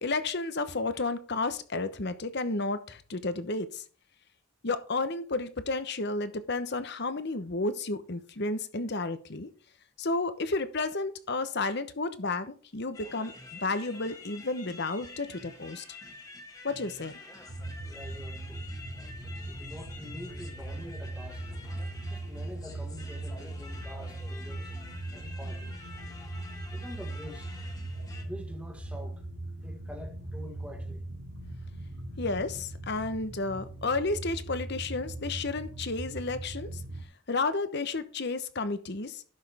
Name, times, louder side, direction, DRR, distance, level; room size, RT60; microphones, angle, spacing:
voice 1, 0.0-3.8 4.6-9.5 10.0-15.8 16.6-17.1 32.2-36.8 37.3-39.2, left 3 dB, 55° left, 1.0 m, -32 dB
sound 1, 12.9-28.2, left 2 dB, 15° left, 1.5 m, -48 dB
sound 2, 17.5-37.1, right 1 dB, 80° right, 2.3 m, -39 dB
voice 2, 17.8-18.7 19.5-21.4 22.1-24.7 25.1-25.7 26.7-27.5 28.2-29.2 29.6-31.0, equal, 5° right, 1.6 m, -46 dB
11.5 x 6.3 x 3.6 m
head